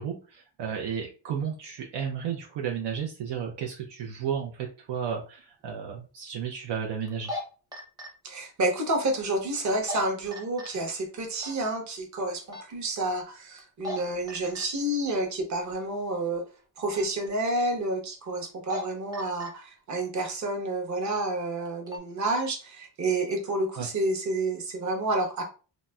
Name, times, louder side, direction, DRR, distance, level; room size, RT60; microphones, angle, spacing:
voice 1, 0.0-7.3 23.8-23.9, right 7 dB, 65° right, 1 dB, 0.6 m, -33 dB
sound 1, 5.0-5.1 7.1-7.4 7.7-8.1 9.7-10.0 10.3-10.7 11.4-11.6 12.5-12.7 13.6-14.0 14.3-14.6 16.9-17.1 18.4-18.8 19.1-19.5 20.1-20.4 21.0-21.2 21.6-22.0, left 2 dB, 10° right, 0.7 m, -36 dB
voice 2, 8.2-16.4 16.8-25.4, right 2 dB, 40° right, 2 dB, 0.9 m, -29 dB
4.0 x 2.0 x 2.3 m, 0.35 s
cardioid pair, 130°, 45 cm